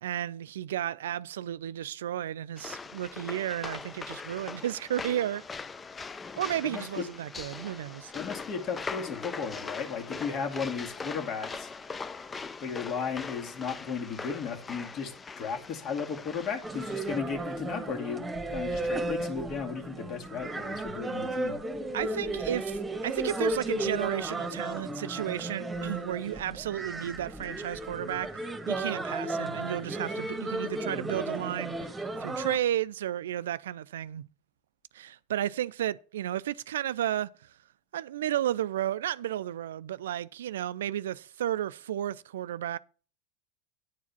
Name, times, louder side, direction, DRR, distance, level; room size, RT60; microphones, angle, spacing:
voice 1, 0.0-5.4 6.4-8.1 21.9-31.9 32.2-34.3 34.9-37.3 37.9-42.8, right 11 dB, 75° right, 0.4 m, -33 dB
sound 1, 2.6-17.2, left 4 dB, 20° left, 0.6 m, -41 dB
voice 2, 6.6-7.0 8.1-11.7 12.6-18.2 18.5-21.6, left 6 dB, 45° left, 2.2 m, -35 dB
sound 2, 16.6-32.6, right 2 dB, 15° right, 1.5 m, -34 dB
10.0 x 4.7 x 7.2 m
hypercardioid pair, 85°, 0 cm